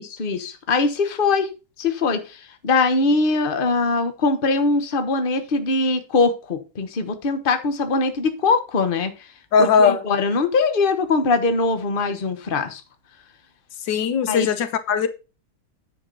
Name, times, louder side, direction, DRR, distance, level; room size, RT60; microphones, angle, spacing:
voice 1, 0.0-1.5 1.8-9.1 9.6-12.8 14.3-14.5, left 3 dB, 35° left, 1.1 m, -22 dB
voice 2, 9.5-10.0 13.9-15.1, left 6 dB, 90° left, 1.6 m, -19 dB
9.5 x 5.1 x 5.3 m
omnidirectional pair, 1.9 m